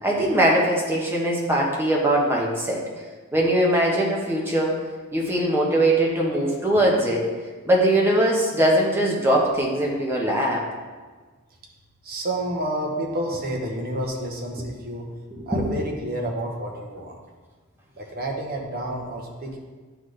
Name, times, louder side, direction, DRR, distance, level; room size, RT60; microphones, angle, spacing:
voice 1, 0.0-2.8 3.3-4.8 5.1-7.3 7.6-10.6 15.3-15.7, right 1 dB, 10° right, -3 dB, 1.1 m, -21 dB
voice 2, 12.0-15.1 15.5-17.1 18.0-19.6, right 1 dB, 45° right, 0 dB, 1.0 m, -29 dB
11.0 x 3.9 x 3.3 m, 1.4 s
head